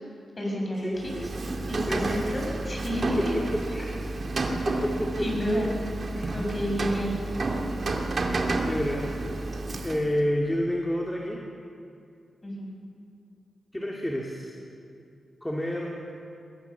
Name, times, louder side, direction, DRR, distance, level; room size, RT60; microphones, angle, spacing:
voice 1, 0.4-1.3 1.7-3.3 5.2-5.7 6.3-7.2 12.4-12.7, equal, 30° left, -1 dB, 7.3 m, -30 dB
Rain, 1.0-10.2, right 2 dB, 50° right, 2.3 m, -30 dB
voice 2, 1.8-2.2 3.2-3.9 4.6-5.3 6.1-6.3 8.6-9.1 9.8-11.4 13.7-14.6 15.4-16.0, equal, 10° left, -2 dB, 2.5 m, -29 dB
22.0 x 17.5 x 7.1 m, 2.5 s
cardioid pair, 70°, 0 cm